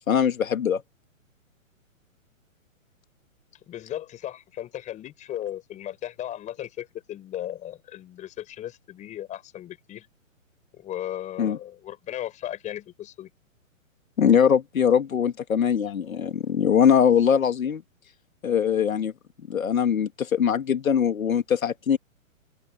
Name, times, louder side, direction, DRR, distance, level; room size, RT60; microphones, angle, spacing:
voice 1, 0.1-0.8 11.4-11.6 14.2-17.8 18.4-19.1 19.5-22.0, left 8 dB, 85° left, 2.3 m, -22 dB
voice 2, 3.7-10.1 10.7-13.3, left 12 dB, 20° left, 4.5 m, -36 dB
open air
hypercardioid pair, 150°, 41 cm